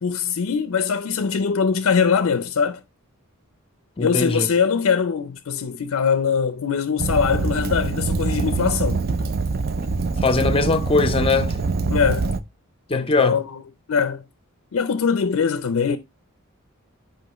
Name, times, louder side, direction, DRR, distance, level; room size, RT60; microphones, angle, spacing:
voice 1, 0.0-2.8 4.0-9.0 11.9-12.3 12.9-13.6 13.9-14.2 14.7-16.0, left 6 dB, 70° left, 0.5 m, -22 dB
voice 2, 4.0-4.5 10.2-11.6 12.9-13.4, left 3 dB, 25° left, 0.6 m, -21 dB
Fire, 7.0-12.4, right 3 dB, 45° right, 0.4 m, -24 dB
7.8 x 5.1 x 2.9 m
head